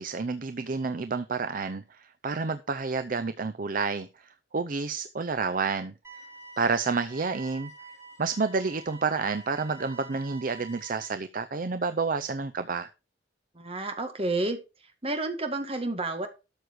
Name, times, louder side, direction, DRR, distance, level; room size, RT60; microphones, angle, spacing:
voice 1, 0.0-5.9 6.6-7.7 8.2-12.9, right 4 dB, 50° right, 0.6 m, -29 dB
sound 1, 6.0-11.1, right 4 dB, 15° right, 4.6 m, -47 dB
voice 2, 13.6-14.6 15.0-16.3, right 2 dB, 30° right, 2.0 m, -30 dB
12.5 x 6.6 x 4.7 m
head